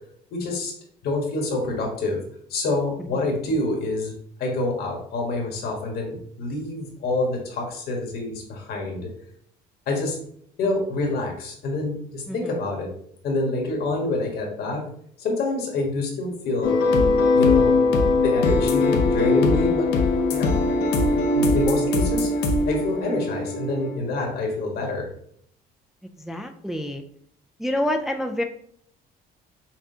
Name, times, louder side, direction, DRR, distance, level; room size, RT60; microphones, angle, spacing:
voice 1, 0.3-0.7 1.0-2.2 2.5-4.1 4.4-9.1 9.9-10.2 10.6-12.9 13.2-14.8 15.2-16.8 17.3-17.8 18.2-19.9 20.3-20.6 21.3-25.1, left 2 dB, 70° left, 1 dB, 1.3 m, -27 dB
sound 1, 16.6-24.0, left 3 dB, 85° left, 0.7 m, -21 dB
voice 2, 26.0-27.0 27.6-28.4, left 1 dB, ahead, 5 dB, 0.3 m, -28 dB
5.9 x 2.2 x 2.8 m, 0.65 s
cardioid pair, 110°, 17 cm